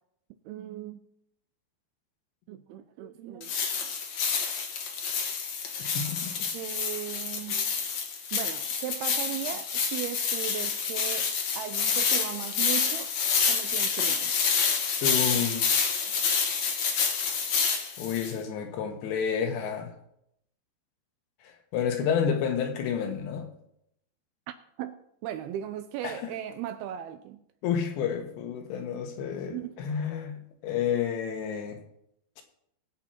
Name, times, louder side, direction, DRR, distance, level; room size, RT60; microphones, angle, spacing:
voice 1, 0.5-1.0 2.5-3.5 6.5-7.7 8.3-11.3 11.6-13.1 13.5-14.3 24.5-27.4 29.5-29.8, right 12 dB, 80° right, 2.3 m, -37 dB
sound 1, 3.4-18.3, left 6 dB, 55° left, 2.0 m, -28 dB
voice 2, 5.8-6.5 15.0-16.3 18.0-19.9 21.7-23.5 26.0-26.2 27.6-31.8, left 7 dB, 80° left, 3.7 m, -30 dB
20.5 x 8.2 x 4.4 m
omnidirectional pair, 5.0 m